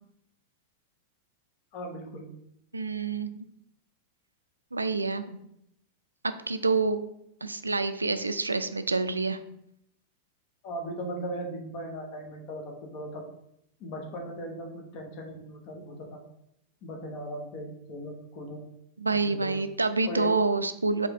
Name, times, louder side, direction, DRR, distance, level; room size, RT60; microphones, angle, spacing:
voice 1, 1.7-2.3 10.6-13.2 13.8-16.2 16.8-18.6 19.2-19.6 20.0-20.3, equal, 45° left, 2 dB, 1.1 m, -38 dB
voice 2, 2.7-3.5 4.7-5.4 6.2-7.0 7.4-9.4 19.0-21.1, right 3 dB, 80° right, 11 dB, 0.3 m, -27 dB
4.8 x 3.4 x 3.0 m, 0.76 s
figure-of-eight pair, 90°, 0 cm